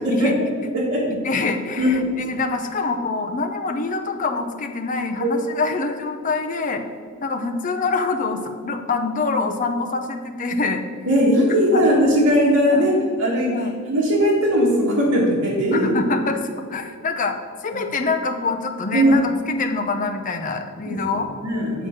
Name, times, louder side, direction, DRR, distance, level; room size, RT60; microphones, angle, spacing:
voice 1, 0.1-0.4 1.1-6.8 7.2-10.8 11.7-11.8 12.7-12.9 13.5-13.8 15.7-16.4 16.7-17.4 17.6-21.3, left 3 dB, 35° left, 4 dB, 0.6 m, -25 dB
voice 2, 1.8-2.1 5.2-5.3 11.0-13.5 13.9-15.9 18.9-19.2 20.8-21.0 21.4-21.9, equal, 85° right, -6 dB, 1.6 m, -19 dB
8.0 x 4.1 x 6.3 m, 2.1 s
head